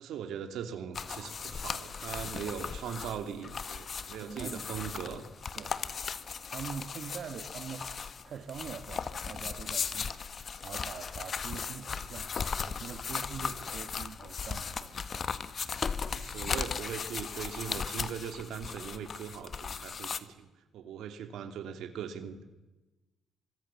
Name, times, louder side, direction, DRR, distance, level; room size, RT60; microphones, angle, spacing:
voice 1, 0.0-5.3 16.1-20.5 20.7-22.6, right 8 dB, 80° right, 8 dB, 2.9 m, -40 dB
sound 1, 0.9-20.2, left 6 dB, 45° left, 1.5 m, -37 dB
voice 2, 4.2-4.7 5.5-6.2 6.5-15.7, right 7 dB, 60° right, 7 dB, 2.0 m, -44 dB
25.5 x 23.0 x 7.2 m, 1.1 s
cardioid pair, 90°, 0 cm